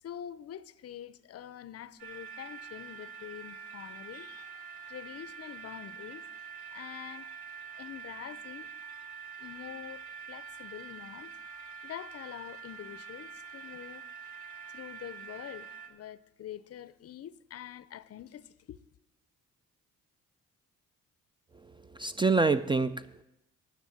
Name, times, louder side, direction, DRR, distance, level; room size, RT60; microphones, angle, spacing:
voice 1, 0.0-6.3 6.7-7.3 7.7-8.7 9.4-11.3 11.8-14.0 14.7-18.8, left 10 dB, 55° left, 0.5 m, -45 dB
sound 1, 2.0-15.9, right 6 dB, 70° right, 1.7 m, -45 dB
voice 2, 21.6-23.2, right 4 dB, 15° right, 0.3 m, -27 dB
10.0 x 6.2 x 7.6 m
cardioid pair, 90°, 30 cm